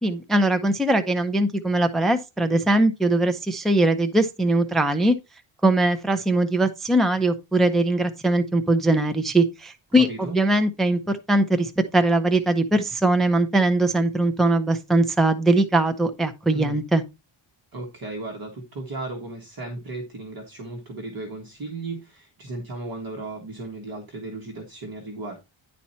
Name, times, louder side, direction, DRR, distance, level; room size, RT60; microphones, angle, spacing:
voice 1, 0.0-5.2 5.6-17.0, right 2 dB, ahead, 0.6 m, -21 dB
voice 2, 10.0-10.4 16.5-16.8 17.7-25.4, right 2 dB, 45° right, 1.6 m, -35 dB
10.5 x 4.2 x 4.3 m
wide cardioid pair, 165°, 49 cm